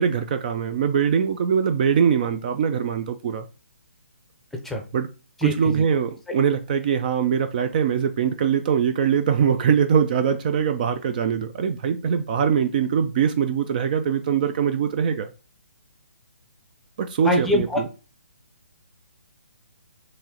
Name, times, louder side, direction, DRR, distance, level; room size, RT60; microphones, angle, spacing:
voice 1, 0.0-3.5 4.9-5.1 5.4-15.3 17.0-17.9, right 7 dB, 40° right, 0.4 m, -22 dB
voice 2, 5.4-5.8 17.2-17.8, left 1 dB, 5° left, 0.7 m, -23 dB
4.7 x 3.1 x 2.8 m
figure-of-eight pair, 140°, 7 cm